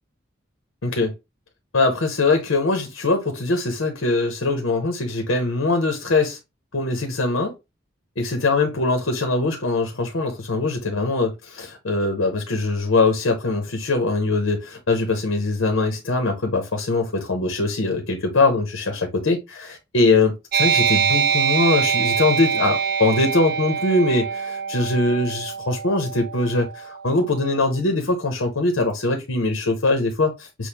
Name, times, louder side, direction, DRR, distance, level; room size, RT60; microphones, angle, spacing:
voice 1, 0.8-1.1 1.7-6.4 6.7-7.5 8.2-30.7, left 3 dB, 85° left, 1.0 m, -22 dB
sound 1, 20.5-27.6, right 6 dB, 50° right, 0.6 m, -24 dB
6.4 x 2.3 x 3.4 m
head